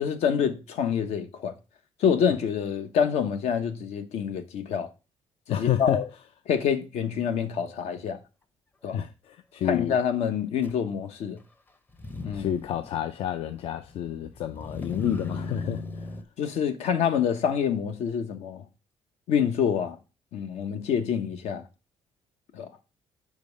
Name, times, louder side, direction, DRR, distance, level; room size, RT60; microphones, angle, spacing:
voice 1, 0.0-1.5 2.0-4.9 5.5-6.0 6.5-8.2 8.8-9.0 9.6-11.4 12.2-12.5 16.4-18.6 19.3-20.0 20.3-21.6 22.5-22.7, left 7 dB, 80° left, 1.0 m, -26 dB
voice 2, 5.5-6.0 8.9-10.0 12.3-16.1, left 10 dB, 65° left, 0.5 m, -29 dB
Motor vehicle (road), 10.6-10.7 11.9-16.2, left 3 dB, 15° left, 0.6 m, -38 dB
5.2 x 4.8 x 5.1 m
cardioid pair, 150°, 11 cm